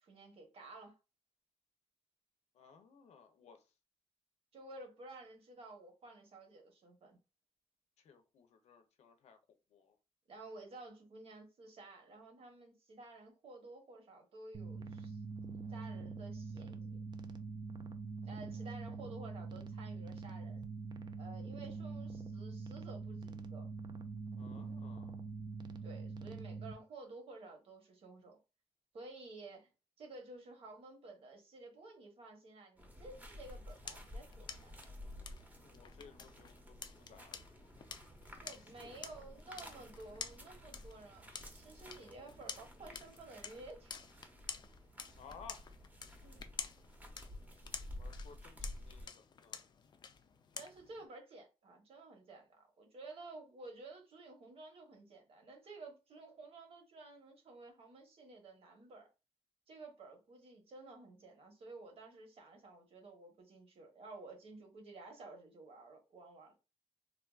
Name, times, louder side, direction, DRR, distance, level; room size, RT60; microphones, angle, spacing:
voice 1, 0.0-1.0 4.5-7.2 10.3-15.2 15.7-17.0 18.2-20.6 21.2-23.7 25.8-28.4 28.9-29.7 30.0-34.7 38.4-44.3 46.2-46.4 50.6-59.1 59.7-66.6, right 2 dB, 60° right, 1.0 m, -53 dB
voice 2, 2.5-3.6 8.0-9.4 9.7-10.0 24.4-25.2 35.6-37.7 38.8-39.0 45.2-45.7 48.0-49.6, left 6 dB, 85° left, 0.6 m, -58 dB
sound 1, 14.5-26.7, right 4 dB, 40° right, 0.3 m, -44 dB
sound 2, 32.8-49.1, left 1 dB, 15° right, 0.7 m, -52 dB
sound 3, 33.3-51.0, left 6 dB, 40° left, 0.3 m, -51 dB
3.5 x 2.3 x 2.3 m
wide cardioid pair, 135°, 11 cm